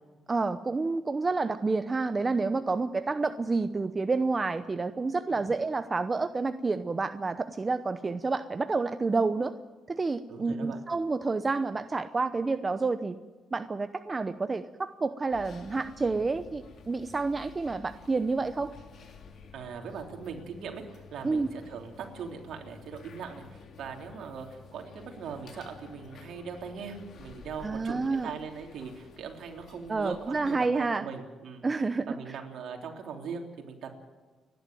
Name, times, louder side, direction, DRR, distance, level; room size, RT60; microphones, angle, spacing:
voice 1, 0.3-9.5 9.9-13.1 13.5-18.7 21.2-21.5 27.6-28.3 29.9-31.0 31.6-32.1, right 3 dB, 30° right, 10 dB, 0.8 m, -29 dB
voice 2, 10.3-10.8 19.5-24.5 24.7-31.7 32.1-34.0, right 6 dB, 70° right, 3 dB, 3.5 m, -40 dB
sound 1, 15.3-30.6, left 5 dB, 60° left, 2.9 m, -51 dB
30.0 x 11.0 x 9.2 m, 1.3 s
cardioid pair, 90°, 0 cm